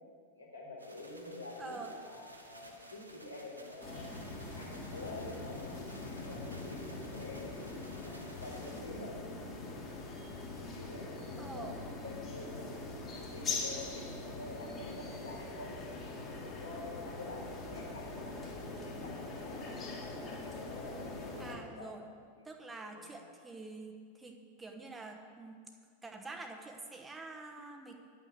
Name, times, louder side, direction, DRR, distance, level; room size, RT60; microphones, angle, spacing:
voice 1, 0.3-4.1 4.5-7.5 8.0-9.3 10.6-11.1 11.5-15.7 16.4-19.8 20.4-21.9 22.8-23.1, left 2 dB, 80° left, -4 dB, 2.6 m, -48 dB
sound 1, 0.8-8.8, right 1 dB, 85° right, 1.1 m, -56 dB
voice 2, 1.6-1.9 11.4-11.8 21.4-22.1 22.4-25.6 26.0-27.9, right 3 dB, 10° right, 3 dB, 1.1 m, -47 dB
sound 2, 3.8-21.6, left 3 dB, 25° left, 2.0 m, -42 dB
11.0 x 5.8 x 8.0 m, 2.2 s
figure-of-eight pair, 90°, 0 cm